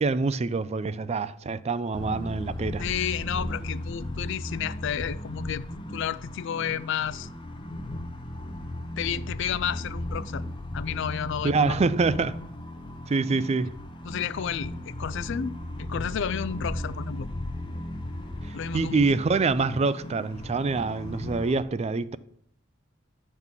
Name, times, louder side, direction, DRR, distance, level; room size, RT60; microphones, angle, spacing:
voice 1, 0.0-2.8 11.4-12.4 13.1-13.7 18.4-22.2, right 4 dB, 30° right, 0.4 m, -26 dB
sound 1, 1.9-21.6, left 1 dB, 25° left, 0.7 m, -36 dB
voice 2, 2.8-5.6 5.9-7.3 9.0-10.4 10.7-11.8 14.0-17.3 18.5-19.0, left 8 dB, 65° left, 0.4 m, -31 dB
11.0 x 4.0 x 7.3 m
head